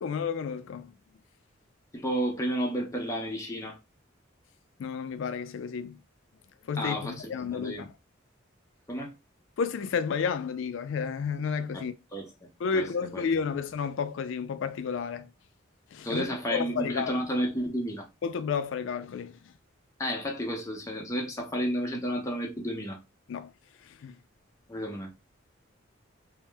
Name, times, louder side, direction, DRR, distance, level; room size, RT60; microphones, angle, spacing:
voice 1, 0.0-0.9 4.8-6.0 6.7-7.9 9.6-11.9 12.6-15.3 15.9-16.2 16.5-17.1 18.2-19.3 23.3-23.5 24.0-24.1, left 6 dB, 70° left, 0.3 m, -31 dB
voice 2, 1.9-3.8 6.8-7.9 8.9-9.1 11.7-12.3 12.7-12.9 13.1-13.2 16.0-18.1 20.0-23.0 24.7-25.1, equal, 15° left, 0.6 m, -31 dB
2.7 x 2.0 x 3.3 m
head